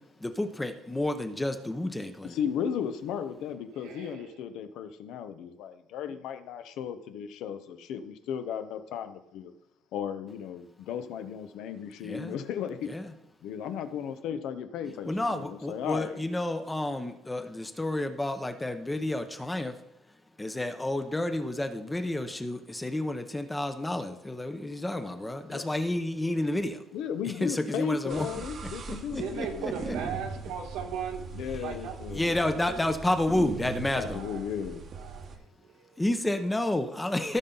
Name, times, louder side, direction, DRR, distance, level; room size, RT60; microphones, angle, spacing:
voice 1, 0.2-2.4 12.0-12.3 12.9-13.1 15.0-19.8 20.4-26.8 27.4-28.3 28.9-29.9 32.1-34.2 36.0-37.4, left 1 dB, 10° left, 8 dB, 0.7 m, -30 dB
voice 2, 2.2-9.5 9.9-12.9 13.4-16.2 25.5-25.8 26.9-29.6 31.3-32.6 33.9-34.8, left 8 dB, 70° left, 10 dB, 0.8 m, -35 dB
voice 3, 3.7-4.4 29.0-31.3 31.6-32.9 34.0-34.5 34.9-36.0, right 7 dB, 80° right, 2 dB, 1.8 m, -39 dB
sound 1, 28.1-35.4, right 4 dB, 40° right, 1.0 m, -40 dB
16.0 x 5.5 x 3.9 m, 0.86 s
cardioid pair, 140°, 0 cm